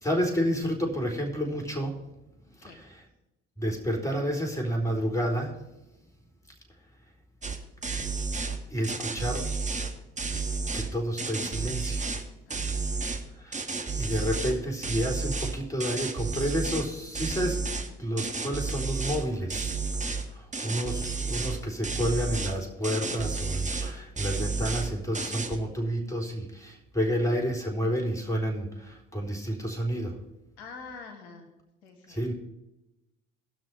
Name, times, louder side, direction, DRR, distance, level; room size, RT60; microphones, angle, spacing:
voice 1, 0.0-2.0 2.5-3.0 3.6-5.6 8.7-9.5 10.7-12.1 13.3-13.7 14.0-17.7 18.0-19.8 20.3-30.2 32.1-32.3, equal, 10° left, 2 dB, 4.0 m, -30 dB
sound 1, 7.4-7.6 7.8-8.6 8.8-10.9 11.2-12.2 12.5-13.2 13.5-14.5 14.8-16.9 17.1-17.9 18.2-19.2 19.5-20.2 20.5-21.6 21.8-22.5 22.8-23.9 24.2-24.9 25.1-25.6, right 4 dB, 20° right, 1.8 m, -31 dB
voice 2, 12.5-13.0 30.6-31.5 31.8-32.2, left 4 dB, 75° left, 2 dB, 1.8 m, -46 dB
18.5 x 6.2 x 4.9 m, 0.96 s
hypercardioid pair, 55°, 33 cm